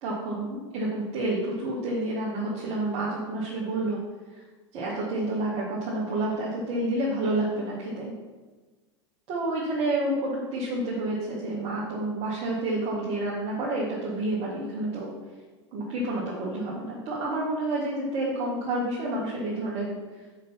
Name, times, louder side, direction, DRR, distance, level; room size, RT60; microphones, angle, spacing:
voice 1, 0.0-4.0 4.3-4.4 4.7-8.1 9.3-15.1 15.7-20.0, right 2 dB, 45° right, -6 dB, 1.7 m, -29 dB
5.6 x 5.1 x 5.7 m, 1.3 s
hypercardioid pair, 105°, 16 cm